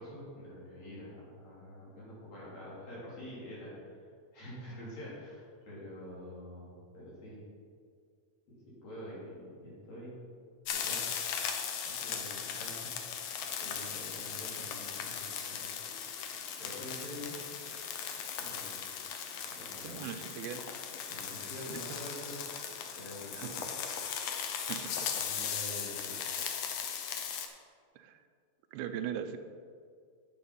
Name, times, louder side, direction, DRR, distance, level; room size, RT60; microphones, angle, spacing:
voice 1, 0.0-7.4 8.5-10.2 10.7-11.1 11.8-12.9 13.6-15.7 16.2-16.3 16.6-17.4 18.4-18.7 19.5-20.0 21.1-22.5 23.0-23.6 25.1-26.3, left 1 dB, 50° left, -7 dB, 4.6 m, -46 dB
sound 1, 10.7-27.5, left 7 dB, 85° left, 1.4 m, -38 dB
voice 2, 19.8-20.6 21.4-21.8 23.3-23.7 24.7-24.9 26.4-26.5 28.0-28.2 28.7-29.4, right 9 dB, 85° right, 8 dB, 2.5 m, -40 dB
10.5 x 7.7 x 5.5 m, 2.1 s
omnidirectional pair, 4.1 m